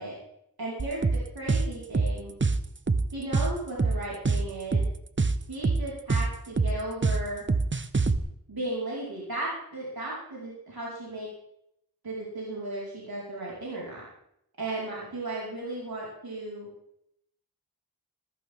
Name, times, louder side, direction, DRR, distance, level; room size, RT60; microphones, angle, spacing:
voice 1, 0.6-2.3 3.1-4.8 5.5-7.4 8.5-11.3 12.0-14.0 14.6-16.7, right 2 dB, 70° right, -6 dB, 4.9 m, -35 dB
sound 1, 0.8-8.2, right 3 dB, 30° right, 0.8 m, -25 dB
14.5 x 14.5 x 3.7 m, 0.77 s
wide cardioid pair, 60°, 38 cm